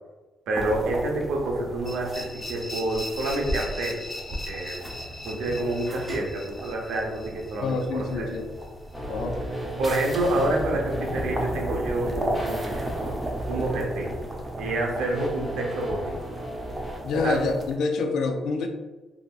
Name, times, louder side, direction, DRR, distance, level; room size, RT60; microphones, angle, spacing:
sound 1, 0.5-17.8, right 1 dB, 25° right, 0.6 m, -36 dB
voice 1, 0.5-4.0 4.5-4.8 5.2-8.4 9.8-12.9 13.5-14.1 14.6-16.2 17.2-17.4, right 2 dB, 85° right, -1 dB, 0.6 m, -28 dB
sound 2, 1.9-8.7, left 1 dB, 30° left, 0.9 m, -39 dB
voice 2, 7.6-8.5 9.1-9.4 17.0-18.7, left 3 dB, 75° left, 5 dB, 0.4 m, -27 dB
sound 3, 8.9-17.0, right 1 dB, 5° left, 0.8 m, -35 dB
3.7 x 2.0 x 2.4 m, 1.2 s
cardioid pair, 90°, 0 cm